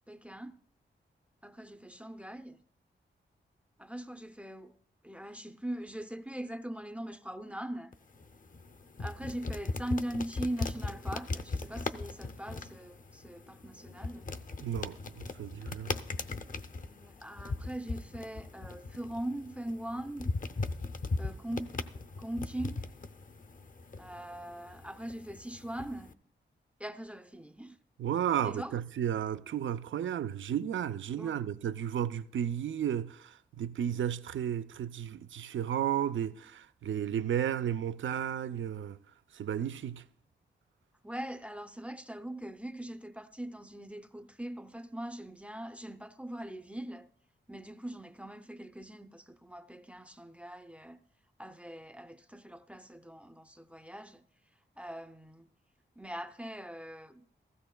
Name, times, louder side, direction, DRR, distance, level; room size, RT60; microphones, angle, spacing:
voice 1, 0.1-0.6 1.4-2.6 3.8-4.8 5.0-7.9 9.0-14.3 16.7-20.3 21.2-21.8 22.2-22.9 24.0-26.1 26.8-27.8 28.4-28.7 31.1-31.4 41.0-47.1 47.5-51.0 51.4-54.2 54.8-55.5 56.0-57.2, right 1 dB, 5° right, 0.5 m, -41 dB
sound 1, 7.9-26.1, left 3 dB, 45° left, 0.6 m, -39 dB
voice 2, 14.6-16.0 28.0-39.0 39.3-40.1, right 9 dB, 75° right, 0.4 m, -33 dB
15.5 x 14.5 x 2.2 m
cardioid pair, 70°, 20 cm